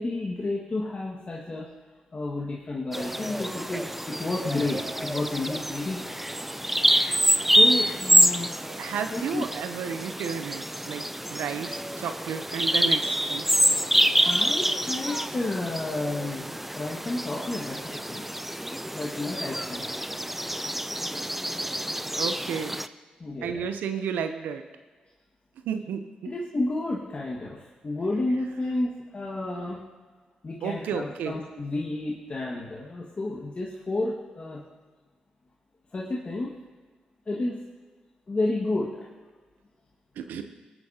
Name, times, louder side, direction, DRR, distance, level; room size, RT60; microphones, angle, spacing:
voice 1, 0.0-1.7 2.1-6.2 7.6-8.5 9.1-9.5 14.2-16.5 16.7-18.3 18.9-19.9 23.2-23.7 26.3-29.9 30.4-34.6 35.9-36.6 37.3-37.6 38.3-39.1, left 2 dB, 40° left, -4 dB, 1.8 m, -31 dB
Bird vocalization bird call bird song, 2.9-22.9, equal, 5° right, 0.5 m, -26 dB
voice 2, 8.7-11.0 11.3-13.4 22.1-22.8 23.4-24.6 25.7-26.0 30.6-31.4 40.2-40.4, right 7 dB, 85° right, 8 dB, 0.7 m, -32 dB
20.0 x 8.8 x 2.9 m, 1.4 s
supercardioid pair, 50°, 3 cm